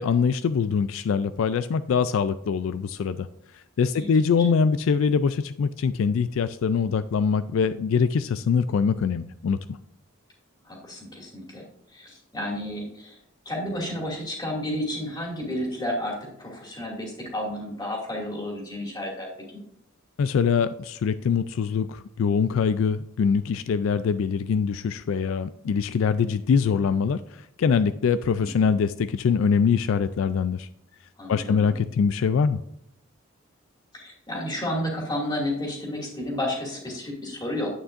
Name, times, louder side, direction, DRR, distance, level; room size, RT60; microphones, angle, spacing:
voice 1, 0.0-3.3 3.5-9.8 20.2-30.7 31.3-32.6, left 6 dB, 70° left, 13 dB, 0.3 m, -23 dB
voice 2, 10.6-11.6 11.9-13.2 13.5-19.3 28.4-28.7 31.2-31.7 33.9-37.7, left 1 dB, 20° left, -3 dB, 2.3 m, -31 dB
9.7 x 8.7 x 2.5 m, 0.74 s
head